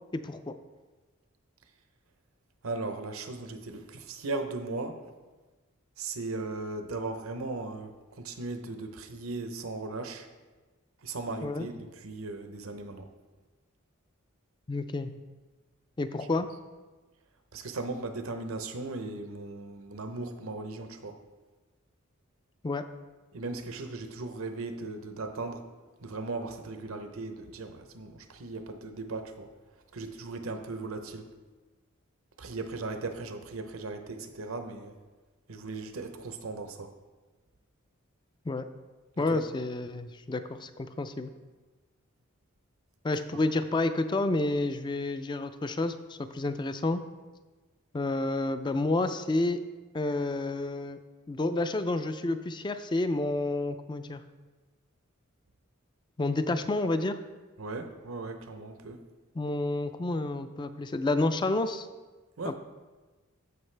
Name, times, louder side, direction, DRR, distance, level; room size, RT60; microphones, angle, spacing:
voice 1, 2.6-5.0 6.0-10.3 11.0-13.1 17.5-21.2 23.3-25.6 26.0-29.5 29.9-31.2 32.4-34.9 35.5-36.9 39.2-39.4 57.6-59.0 62.4-62.5, right 3 dB, 80° right, 7 dB, 0.8 m, -37 dB
voice 2, 14.7-15.1 16.0-16.5 22.6-22.9 38.5-38.6 39.2-41.3 43.0-47.0 47.9-49.6 49.9-51.0 51.3-54.2 56.2-57.2 59.4-61.9 62.4-62.5, left 2 dB, 20° left, 10 dB, 0.4 m, -29 dB
13.5 x 5.2 x 3.3 m, 1.3 s
head